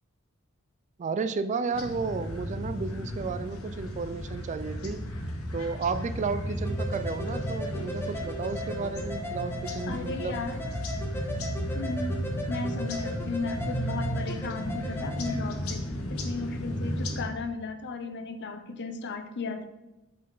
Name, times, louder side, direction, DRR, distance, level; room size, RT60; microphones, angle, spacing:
voice 1, 1.0-5.0 5.5-10.4, right 4 dB, 35° right, 11 dB, 0.3 m, -33 dB
sound 1, 1.7-17.2, equal, 80° left, 1.0 m, -34 dB
sound 2, 6.6-15.4, left 1 dB, 10° left, 0.9 m, -38 dB
voice 2, 9.9-10.6 11.7-12.2 12.5-19.7, left 3 dB, 55° left, 8 dB, 0.6 m, -35 dB
5.6 x 5.3 x 3.9 m, 1.0 s
head